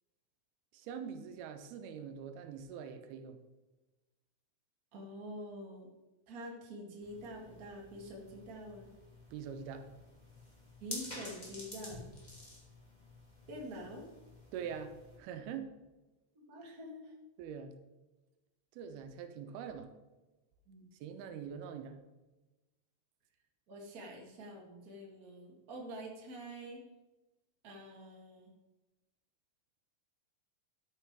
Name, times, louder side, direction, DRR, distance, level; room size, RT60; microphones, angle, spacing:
voice 1, 0.7-3.4 9.3-9.9 14.5-15.7 17.4-17.7 18.7-19.9 21.0-22.0, right 7 dB, 90° right, 8 dB, 2.8 m, -44 dB
voice 2, 4.9-5.9 6.3-8.9 10.8-12.1 13.5-14.1 16.3-17.1 20.7-20.9 23.7-26.8 27.6-28.5, equal, 40° right, 0 dB, 1.4 m, -46 dB
sound 1, 7.0-15.2, left 1 dB, 15° left, 1.5 m, -51 dB
13.0 x 6.7 x 4.6 m, 1.1 s
omnidirectional pair, 4.3 m